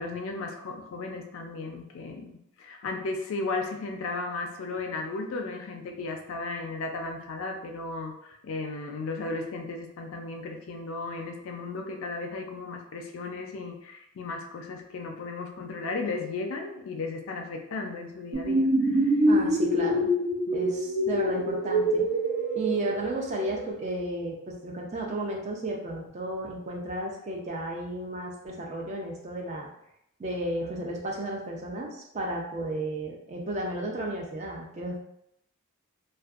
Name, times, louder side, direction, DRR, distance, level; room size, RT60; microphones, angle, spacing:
voice 1, 0.0-19.1 20.5-20.6, left 3 dB, 60° left, 4 dB, 0.4 m, -35 dB
sound 1, 18.3-23.7, right 1 dB, 75° right, 0.7 m, -25 dB
voice 2, 19.3-20.1 20.5-22.1 22.5-29.7 30.2-35.0, right 1 dB, 30° right, -1 dB, 0.4 m, -33 dB
2.5 x 2.2 x 2.3 m, 0.79 s
head